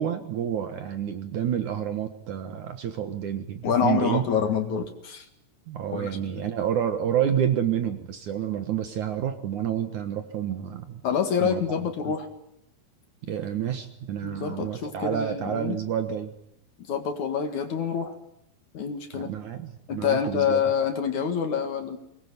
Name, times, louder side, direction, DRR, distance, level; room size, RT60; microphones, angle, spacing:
voice 1, 0.0-4.2 5.7-11.0 11.4-11.6 13.3-16.3 19.1-20.6, right 9 dB, 60° right, 9 dB, 2.4 m, -29 dB
voice 2, 3.6-5.3 5.9-6.1 11.0-12.3 14.2-15.8 16.9-18.1 18.7-19.3 19.9-22.0, left 7 dB, 55° left, 8 dB, 2.8 m, -26 dB
23.5 x 20.5 x 9.6 m, 0.76 s
omnidirectional pair, 4.7 m